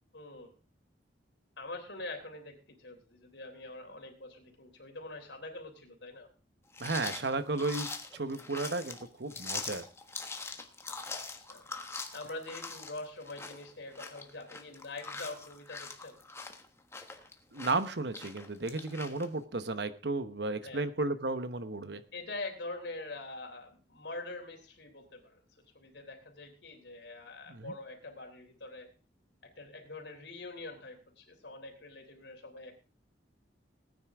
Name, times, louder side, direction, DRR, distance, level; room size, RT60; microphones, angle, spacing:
voice 1, 0.1-0.5 1.6-6.3 11.1-11.7 12.1-16.2 20.6-20.9 22.1-25.4 25.7-28.9 29.4-32.8, left 2 dB, 70° left, 4 dB, 3.3 m, -44 dB
sound 1, 6.7-19.3, left 3 dB, 15° left, 1.3 m, -43 dB
voice 2, 6.8-9.8 17.5-22.0 27.5-27.7, right 3 dB, 65° right, 12 dB, 1.0 m, -34 dB
19.0 x 9.6 x 3.6 m, 0.34 s
head